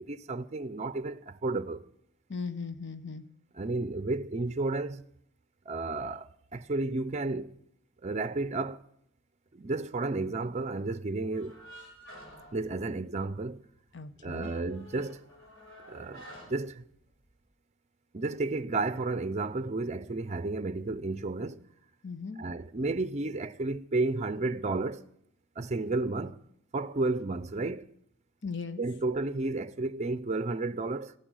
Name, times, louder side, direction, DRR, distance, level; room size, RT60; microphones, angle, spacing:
voice 1, 0.0-1.8 3.5-5.0 5.7-7.5 8.0-8.8 9.5-11.5 12.5-13.6 14.2-15.2 15.9-16.8 18.1-21.6 22.4-25.0 25.6-26.4 26.7-27.9 28.8-31.1, right 3 dB, 35° right, 0.5 m, -32 dB
voice 2, 2.3-3.2 13.9-14.5 22.0-22.4 28.4-28.8, left 4 dB, 60° left, 1.0 m, -38 dB
sound 1, 11.3-13.4 13.7-13.8 14.2-17.4, equal, 80° left, 5.5 m, -51 dB
14.5 x 14.0 x 6.3 m
head